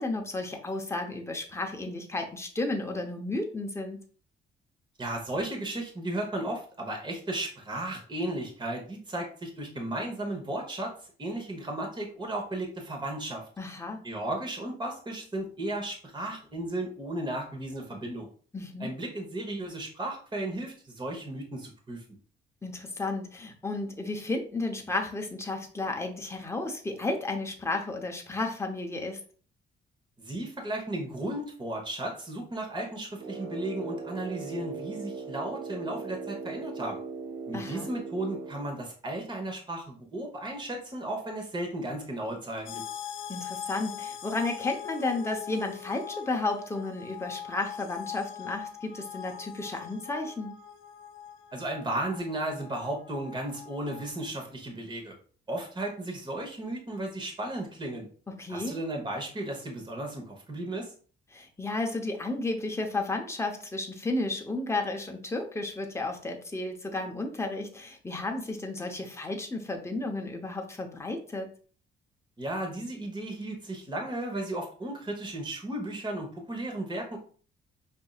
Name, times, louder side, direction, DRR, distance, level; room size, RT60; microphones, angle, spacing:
voice 1, 0.0-4.0 13.6-14.0 18.5-18.9 22.6-29.2 37.5-37.9 43.3-50.6 58.4-58.7 61.3-71.5, left 2 dB, 15° left, 2 dB, 0.8 m, -33 dB
voice 2, 5.0-10.9 11.2-13.4 14.0-18.3 18.8-22.0 30.2-37.0 37.5-42.8 51.5-55.2 55.5-58.1 58.5-60.9 72.4-77.2, right 1 dB, 20° right, 1 dB, 1.1 m, -35 dB
Brass instrument, 33.2-38.8, right 4 dB, 85° right, 0.7 m, -39 dB
sound 1, 42.7-54.1, left 9 dB, 80° left, 0.5 m, -42 dB
5.2 x 2.7 x 2.4 m, 0.42 s
cardioid pair, 90°, 20 cm